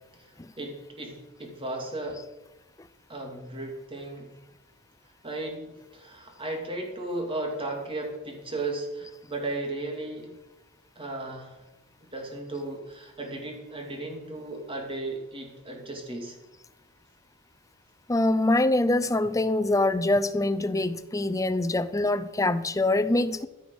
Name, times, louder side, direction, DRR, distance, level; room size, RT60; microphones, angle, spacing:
voice 1, 0.6-2.2 3.1-4.3 5.2-10.3 11.0-11.5 12.1-16.4, right 2 dB, 25° right, 2.5 m, -35 dB
voice 2, 18.1-23.5, left 2 dB, 15° left, 0.5 m, -24 dB
14.0 x 6.9 x 6.3 m
head